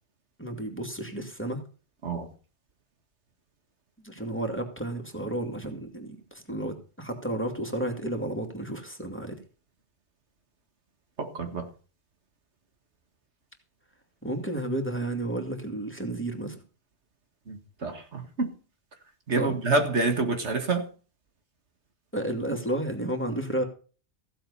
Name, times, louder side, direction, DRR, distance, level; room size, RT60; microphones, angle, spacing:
voice 1, 0.4-1.6 4.0-9.4 14.2-16.6 19.4-19.5 22.1-23.6, right 1 dB, 10° left, 2.6 m, -32 dB
voice 2, 11.2-11.7 17.5-18.5 19.3-20.9, right 3 dB, 80° right, 2.1 m, -27 dB
15.5 x 7.8 x 5.6 m
omnidirectional pair, 1.2 m